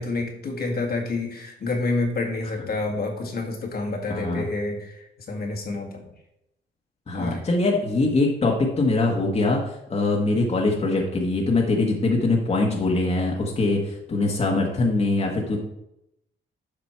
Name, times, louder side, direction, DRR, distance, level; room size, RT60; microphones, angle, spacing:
voice 1, 0.0-6.1 7.1-7.4, left 3 dB, 50° left, 1 dB, 1.8 m, -28 dB
voice 2, 4.1-4.5 7.1-15.6, left 2 dB, 30° left, -1 dB, 1.5 m, -23 dB
7.8 x 5.2 x 4.4 m, 0.82 s
cardioid pair, 90°, 20 cm